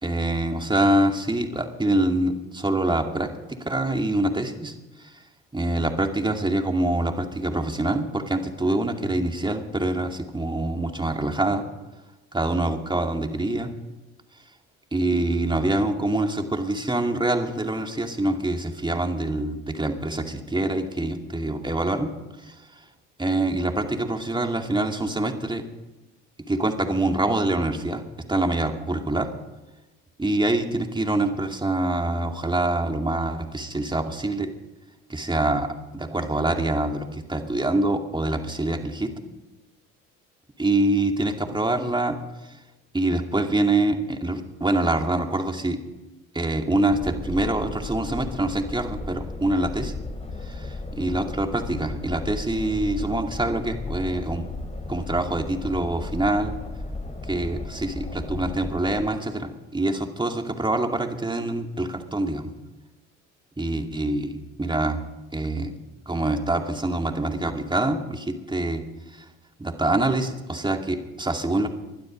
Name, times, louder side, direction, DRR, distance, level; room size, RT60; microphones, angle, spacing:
voice 1, 0.0-4.7 5.0-5.1 5.5-11.6 12.3-13.7 14.9-22.1 22.4-22.5 23.2-25.6 26.5-28.0 28.3-29.3 30.2-34.5 35.1-35.7 35.9-39.3 40.6-42.2 42.9-45.8 46.3-49.9 50.4-54.4 54.9-56.5 57.3-62.5 63.6-65.0 65.3-65.7 66.1-68.8 69.6-71.7, right 2 dB, 10° right, 4 dB, 2.4 m, -25 dB
sound 1, 46.9-59.0, left 3 dB, 15° left, 2.5 m, -35 dB
20.5 x 12.0 x 5.2 m, 1.1 s
hypercardioid pair, 65°, 37 cm